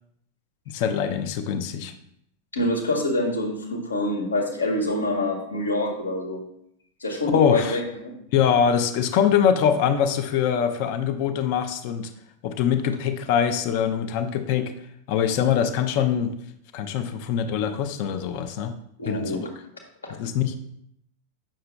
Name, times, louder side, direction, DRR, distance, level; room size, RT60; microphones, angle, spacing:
voice 1, 0.7-1.9 7.3-7.8 8.3-12.1 12.4-14.7 15.1-16.3 16.7-18.7 19.0-19.4 20.2-20.5, left 8 dB, 45° left, 9 dB, 0.6 m, -23 dB
voice 2, 2.5-6.4 7.0-8.1 19.0-19.5 20.0-20.1, left 1 dB, 75° left, 0 dB, 1.6 m, -26 dB
8.7 x 6.7 x 2.2 m, 0.72 s
figure-of-eight pair, 90°, 0 cm